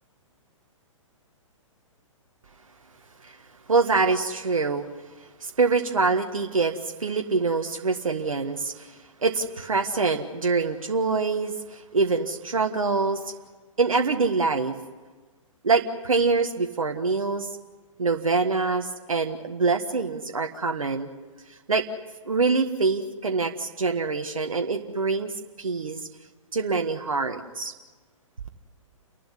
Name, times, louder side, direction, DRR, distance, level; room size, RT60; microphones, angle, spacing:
voice 1, 3.7-4.9 5.4-13.3 13.8-14.8 15.6-17.5 18.0-21.1 21.7-21.8 22.2-25.3 25.6-26.1 26.5-27.7, right 4 dB, 80° right, 4 dB, 1.6 m, -25 dB
29.5 x 12.0 x 10.0 m, 1.3 s
figure-of-eight pair, 125°, 17 cm